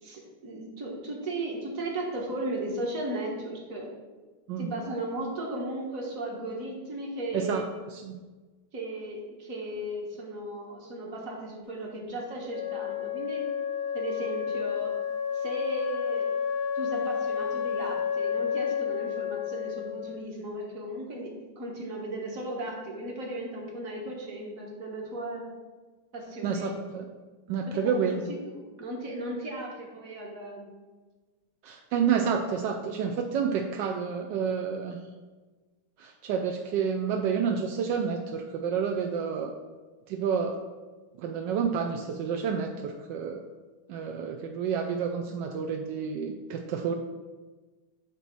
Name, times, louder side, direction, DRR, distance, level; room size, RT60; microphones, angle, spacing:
voice 1, 0.0-3.9 4.6-7.7 8.7-13.4 13.9-14.9 15.3-16.3 16.7-25.4 26.1-26.7 27.7-30.7, right 1 dB, 45° right, -1 dB, 1.5 m, -36 dB
Wind instrument woodwind instrument, 12.5-20.2, left 7 dB, 65° left, 1.1 m, -31 dB
voice 2, 26.4-27.0 27.5-28.2 31.6-35.0 36.0-39.5 40.1-40.6 41.2-43.4 43.9-46.9, right 6 dB, 80° right, 3 dB, 1.0 m, -29 dB
8.2 x 3.0 x 5.9 m, 1.3 s
omnidirectional pair, 2.4 m